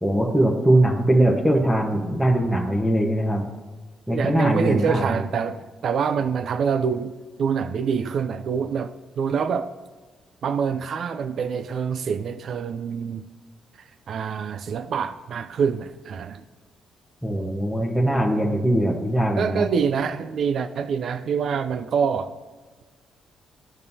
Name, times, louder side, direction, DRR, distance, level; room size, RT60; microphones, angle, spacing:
voice 1, 0.0-3.4 4.1-5.0 17.2-19.7, right 1 dB, 5° right, -2 dB, 1.2 m, -21 dB
voice 2, 4.1-7.1 7.4-9.7 10.4-13.2 13.8-16.4 19.4-22.3, right 6 dB, 60° right, 11 dB, 0.4 m, -26 dB
14.0 x 5.3 x 2.7 m, 1.4 s
cardioid pair, 90°, 0 cm